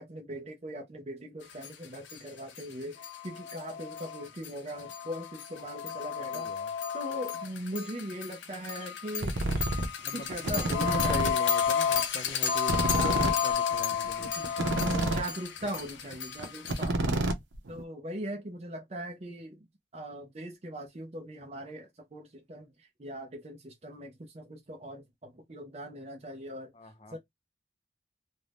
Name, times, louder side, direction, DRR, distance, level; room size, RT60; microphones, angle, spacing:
voice 1, 0.0-6.5 6.9-9.3 10.1-11.4 12.9-13.3 14.4-14.6 15.0-17.0 17.7-19.7 19.9-22.7 23.0-26.7 27.1-27.2, equal, 35° right, 0.5 m, -40 dB
sound 1, 1.6-1.7 2.1-2.2 2.6-2.7 3.0-16.9, left 7 dB, 85° left, 0.6 m, -32 dB
voice 2, 6.3-6.7 10.0-15.2 26.7-27.2, left 1 dB, 30° left, 0.5 m, -41 dB
sound 2, 9.2-9.9 10.3-11.3 11.6-11.7 11.9-12.0 12.3-12.4 12.6-15.3 15.6-15.8 16.1-16.2 16.4-17.8, right 2 dB, 90° right, 0.6 m, -29 dB
2.6 x 2.1 x 3.2 m
head